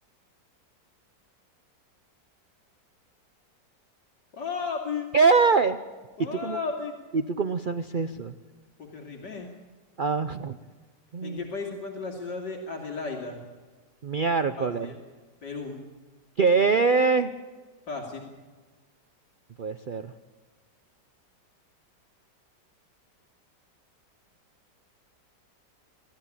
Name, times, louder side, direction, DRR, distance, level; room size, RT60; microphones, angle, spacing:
voice 1, 4.3-5.1 6.2-6.9 8.8-9.5 11.2-13.4 14.6-15.0 15.4-15.8 17.9-18.3, left 4 dB, 70° left, 0 dB, 3.1 m, -34 dB
voice 2, 5.1-5.8 6.4-6.6 7.1-8.3 10.0-10.6 11.1-11.4 14.0-14.9 16.4-17.3 19.6-20.1, right 4 dB, 70° right, 11 dB, 0.4 m, -23 dB
28.0 x 13.5 x 8.7 m, 1.4 s
omnidirectional pair, 1.9 m